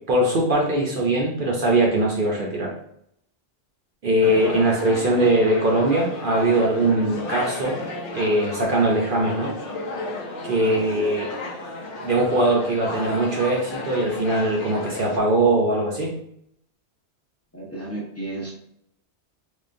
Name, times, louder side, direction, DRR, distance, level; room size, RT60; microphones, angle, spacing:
voice 1, 0.1-2.7 4.0-7.8 8.1-9.5 10.4-11.3 12.0-16.2, right 1 dB, 55° right, -1 dB, 0.7 m, -21 dB
sound 1, 4.2-15.2, left 2 dB, 55° left, 0.7 m, -33 dB
voice 2, 17.5-18.5, right 2 dB, 15° left, -5 dB, 0.7 m, -33 dB
3.7 x 3.2 x 2.5 m, 0.73 s
omnidirectional pair, 1.2 m